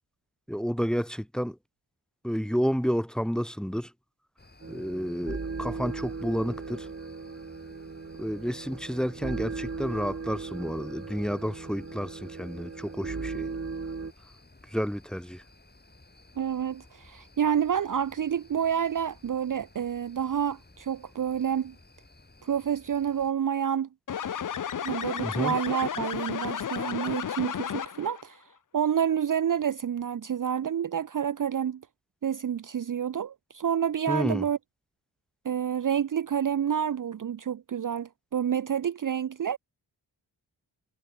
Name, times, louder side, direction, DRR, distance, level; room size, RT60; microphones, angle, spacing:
voice 1, 0.5-1.6 2.2-3.9 4.7-6.9 8.2-13.5 14.7-15.4 25.2-25.5 34.1-34.4, equal, ahead, 1.6 m, -30 dB
sound 1, 4.4-23.3, left 2 dB, 20° left, 4.2 m, -56 dB
sound 2, 4.6-14.1, right 4 dB, 30° right, 1.6 m, -38 dB
voice 2, 16.4-21.7 22.4-23.9 24.8-28.4 28.7-31.8 32.2-34.6 35.4-39.6, right 8 dB, 45° right, 0.6 m, -28 dB
sound 3, 24.1-28.2, left 8 dB, 45° left, 0.7 m, -33 dB
cardioid pair, 65°, 43 cm